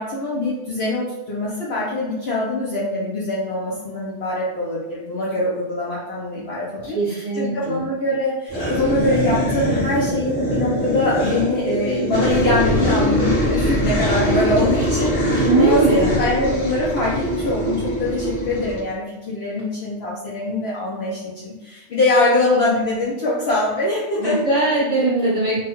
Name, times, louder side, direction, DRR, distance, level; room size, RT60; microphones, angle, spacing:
voice 1, 0.0-24.4, left 2 dB, 60° left, -6 dB, 0.8 m, -23 dB
voice 2, 6.8-7.8 15.4-16.1 24.2-25.6, right 2 dB, 30° right, -10 dB, 0.8 m, -20 dB
sound 1, 8.5-18.8, equal, 80° left, 1.4 m, -22 dB
3.3 x 2.2 x 2.9 m, 1.1 s
omnidirectional pair, 1.3 m